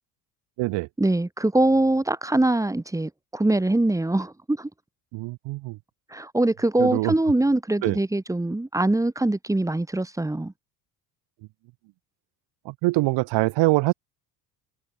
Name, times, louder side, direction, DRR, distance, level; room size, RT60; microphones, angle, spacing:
voice 1, 1.0-4.7 6.1-10.5, right 2 dB, 5° right, 1.1 m, -23 dB
voice 2, 5.1-5.8 6.8-7.1 7.8-8.0 12.7-13.9, right 22 dB, 60° right, 0.9 m, -23 dB
hypercardioid pair, 65°, 49 cm